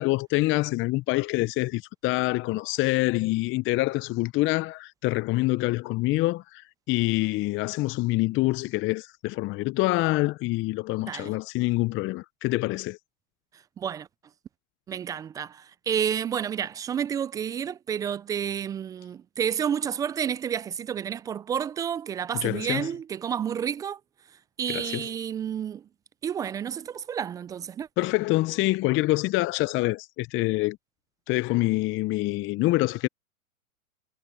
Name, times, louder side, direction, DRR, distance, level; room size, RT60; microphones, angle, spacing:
voice 1, 0.0-6.6 6.9-13.0 22.3-22.9 24.7-25.1 28.0-30.8 31.3-33.1, left 20 dB, 30° left, 0.8 m, -26 dB
voice 2, 13.8-14.1 14.9-24.0 24.6-25.8 26.2-27.9, right 8 dB, 10° right, 0.3 m, -30 dB
hypercardioid pair, 105°, 42 cm